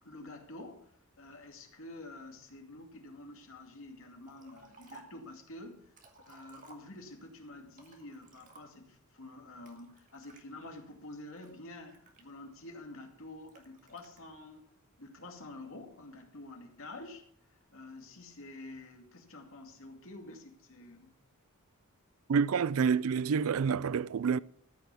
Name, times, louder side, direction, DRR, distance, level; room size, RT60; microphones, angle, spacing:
voice 1, 0.0-5.9 6.3-14.7 15.0-17.2 17.7-21.1, left 2 dB, 60° left, 2.4 m, -48 dB
Liquid, 4.2-5.3 5.7-7.3 7.7-9.0 9.7-10.4 11.0-12.7 13.5-14.2, right 3 dB, 35° right, 2.0 m, -57 dB
voice 2, 22.3-24.4, right 6 dB, 65° right, 0.4 m, -28 dB
14.0 x 6.2 x 6.8 m
head